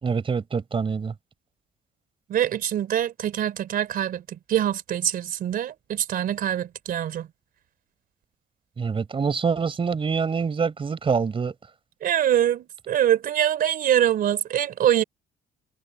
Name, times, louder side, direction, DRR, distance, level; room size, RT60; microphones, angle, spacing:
voice 1, 0.0-1.1 8.8-11.5, right 5 dB, 30° right, 4.8 m, -25 dB
voice 2, 2.3-7.3 12.0-15.0, right 10 dB, 60° right, 3.5 m, -24 dB
cardioid pair, 110°, 17 cm